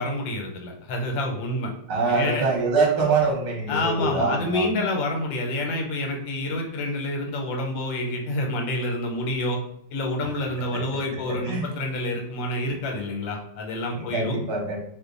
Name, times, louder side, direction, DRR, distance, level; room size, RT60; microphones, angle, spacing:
voice 1, 0.0-1.7 2.1-2.5 3.7-9.6 9.9-14.4, left 1 dB, 80° left, 2 dB, 1.4 m, -28 dB
voice 2, 1.9-4.8 10.7-10.8 11.3-11.6 14.0-14.8, right 4 dB, 60° right, -2 dB, 1.2 m, -24 dB
3.0 x 2.2 x 3.7 m, 0.69 s
omnidirectional pair, 2.1 m